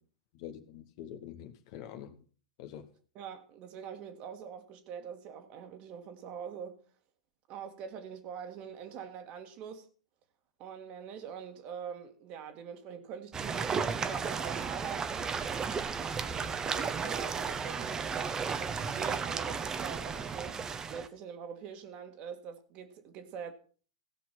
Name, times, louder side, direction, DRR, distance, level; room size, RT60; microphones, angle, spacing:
voice 1, 0.3-2.2 2.6-2.9, left 10 dB, 45° left, 1.4 m, -45 dB
voice 2, 3.1-6.8 7.5-9.9 10.6-15.4 16.2-23.5, right 7 dB, 40° right, 1.8 m, -44 dB
sound 1, 13.3-21.1, right 5 dB, 20° right, 1.0 m, -34 dB
16.5 x 5.9 x 5.9 m
figure-of-eight pair, 95°, 3 cm